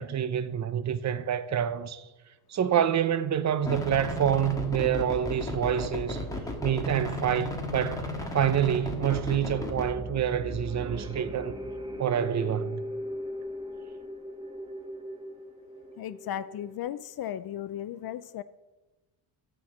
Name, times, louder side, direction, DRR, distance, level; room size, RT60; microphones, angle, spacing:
voice 1, 0.0-2.0 2.5-6.3 6.6-8.0 8.3-11.5 12.0-12.8, right 9 dB, 35° right, 0.7 m, -27 dB
sound 1, 3.6-9.9, left 1 dB, 5° left, 1.6 m, -34 dB
sound 2, 7.6-16.8, equal, 10° right, 1.0 m, -40 dB
voice 2, 16.0-18.4, left 11 dB, 50° left, 0.5 m, -36 dB
13.0 x 4.4 x 7.2 m
cardioid pair, 110°, 48 cm